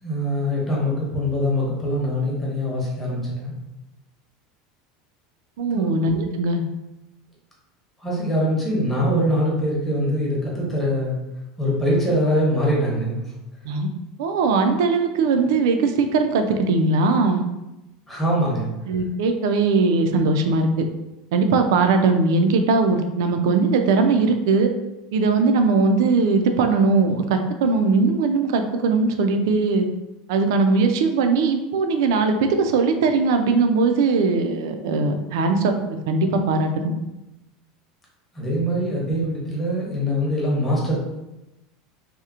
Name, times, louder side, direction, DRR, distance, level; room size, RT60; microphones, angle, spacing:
voice 1, 0.0-3.5 5.7-5.9 8.0-11.1 11.6-13.2 18.1-18.7 38.3-41.0, equal, 10° left, -5 dB, 0.8 m, -23 dB
voice 2, 5.6-6.6 13.6-13.9 14.2-17.4 18.9-20.8 21.3-24.7 25.1-29.9 30.3-35.7 36.1-36.9, right 4 dB, 85° right, 6 dB, 0.3 m, -20 dB
2.8 x 2.0 x 2.4 m, 0.95 s
supercardioid pair, 150°, 2 cm